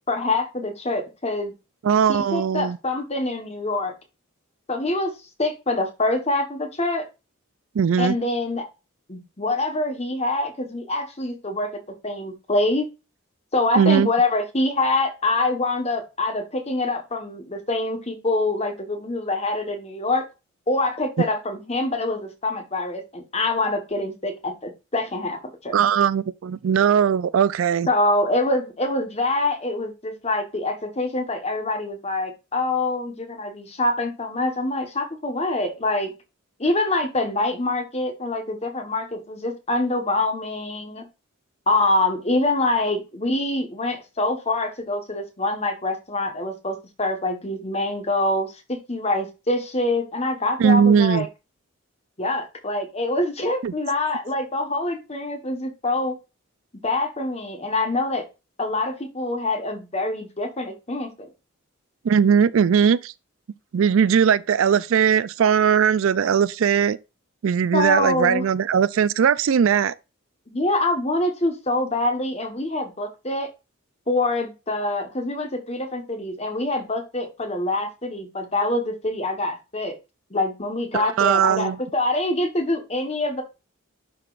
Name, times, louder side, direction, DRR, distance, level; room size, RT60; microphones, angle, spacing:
voice 1, 0.1-1.5 2.1-3.9 4.7-5.1 5.4-7.1 8.0-8.6 9.1-11.7 12.0-12.9 13.5-20.2 20.7-25.8 27.9-36.1 36.6-41.0 41.7-51.3 52.2-56.1 56.8-58.2 58.6-61.3 67.7-68.4 70.5-73.5 74.1-80.0 80.3-83.4, left 2 dB, 30° left, 1.2 m, -25 dB
voice 2, 1.8-2.8 7.8-8.1 13.8-14.1 25.7-27.9 50.6-51.3 53.6-53.7 62.0-63.1 63.7-67.0 67.4-69.9 80.9-81.8, right 7 dB, 70° right, 0.4 m, -19 dB
11.0 x 3.9 x 2.5 m
head